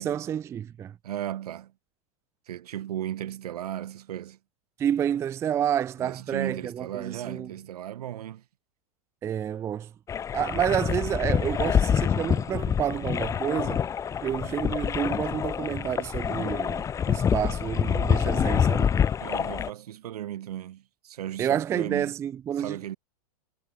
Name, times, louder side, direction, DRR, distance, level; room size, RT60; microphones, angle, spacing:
voice 1, 0.0-0.9 4.8-7.5 9.2-9.9 10.3-13.8 14.2-19.0 21.4-22.8, right 9 dB, 15° right, 0.4 m, -29 dB
voice 2, 1.0-1.7 2.5-4.4 6.0-8.4 19.2-22.1 22.6-23.0, right 11 dB, 80° right, 4.0 m, -36 dB
sound 1, 10.1-19.7, left 8 dB, 15° left, 1.1 m, -26 dB
supercardioid pair, 150°, 19 cm